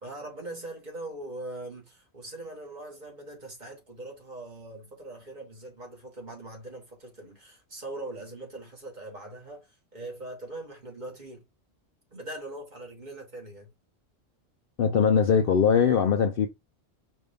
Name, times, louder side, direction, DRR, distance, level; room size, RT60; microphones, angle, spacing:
voice 1, 0.0-11.4 12.1-13.7, right 2 dB, 35° right, 1.6 m, -41 dB
voice 2, 14.8-16.5, left 6 dB, 60° left, 0.6 m, -21 dB
5.2 x 2.6 x 3.5 m
omnidirectional pair, 1.3 m